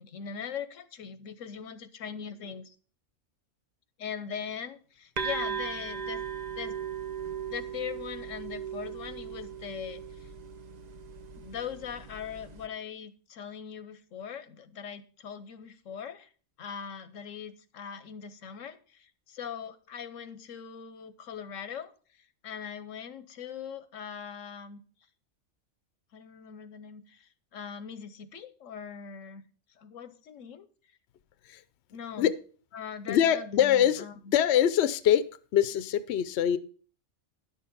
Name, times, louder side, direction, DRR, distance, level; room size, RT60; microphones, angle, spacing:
voice 1, 0.0-2.8 4.0-6.2 6.6-6.8 7.5-10.3 11.4-16.3 16.6-24.8 26.1-29.4 29.7-30.7 31.9-32.3 32.7-34.1, left 7 dB, 90° left, 12 dB, 1.2 m, -41 dB
sound 1, 5.2-12.7, right 6 dB, 40° right, 0.7 m, -38 dB
voice 2, 33.1-34.0 34.3-35.2 35.5-36.6, left 10 dB, 65° left, 14 dB, 0.8 m, -23 dB
10.5 x 6.6 x 5.3 m, 0.41 s
omnidirectional pair, 1.3 m